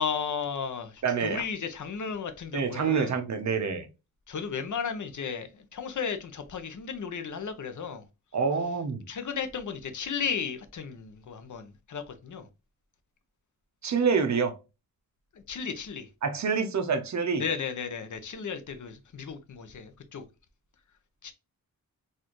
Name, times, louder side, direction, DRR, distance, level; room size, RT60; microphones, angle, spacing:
voice 1, 0.0-3.1 4.3-8.0 9.1-12.5 15.5-16.1 17.4-20.2 21.2-21.3, left 6 dB, 55° left, 0.7 m, -34 dB
voice 2, 1.0-1.4 2.5-3.9 8.3-9.0 13.8-14.6 16.2-17.4, right 5 dB, 50° right, 0.7 m, -27 dB
4.2 x 2.6 x 2.9 m
wide cardioid pair, 155°, 36 cm